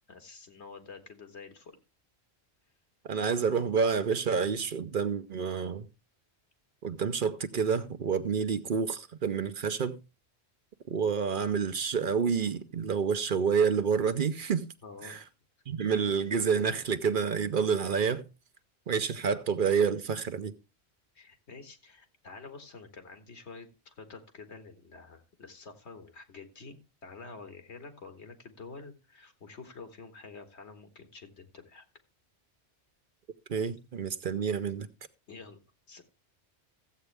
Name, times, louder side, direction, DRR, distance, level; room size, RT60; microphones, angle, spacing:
voice 1, 0.1-1.8 14.8-15.2 21.1-31.9 35.3-35.6 35.9-36.0, left 4 dB, 85° left, 1.9 m, -48 dB
voice 2, 3.1-5.9 6.8-10.0 10.9-14.7 15.0-15.2 15.7-18.3 18.9-20.5 33.5-34.9, right 6 dB, 55° right, 0.8 m, -28 dB
14.5 x 8.1 x 3.3 m
omnidirectional pair, 1.1 m